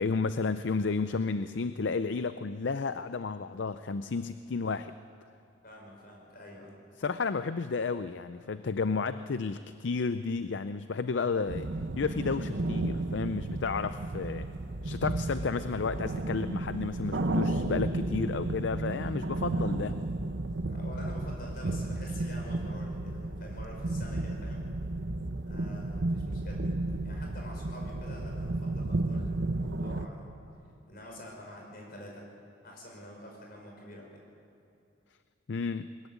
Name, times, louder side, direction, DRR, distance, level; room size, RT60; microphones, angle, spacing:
voice 1, 0.0-4.9 7.0-11.7 12.0-14.5 14.8-20.0 35.5-35.9, left 4 dB, 65° left, 12 dB, 0.5 m, -32 dB
voice 2, 5.6-6.8 13.8-14.4 20.7-24.6 25.5-26.6 27.0-30.3 30.9-32.3 32.6-34.2, left 1 dB, 50° left, 0 dB, 5.3 m, -47 dB
sound 1, 11.5-30.1, right 2 dB, 65° right, 1.0 m, -33 dB
21.0 x 14.0 x 9.4 m, 2.7 s
head